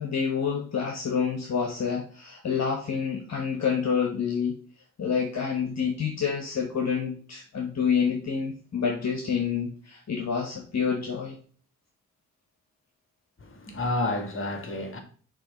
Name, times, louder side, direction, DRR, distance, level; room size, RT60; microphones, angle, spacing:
voice 1, 0.0-4.6 5.0-11.4, left 6 dB, 55° left, 1.3 m, -28 dB
voice 2, 13.5-15.0, left 2 dB, 40° left, 2.0 m, -30 dB
6.4 x 3.2 x 5.3 m
supercardioid pair, 50°, 32 cm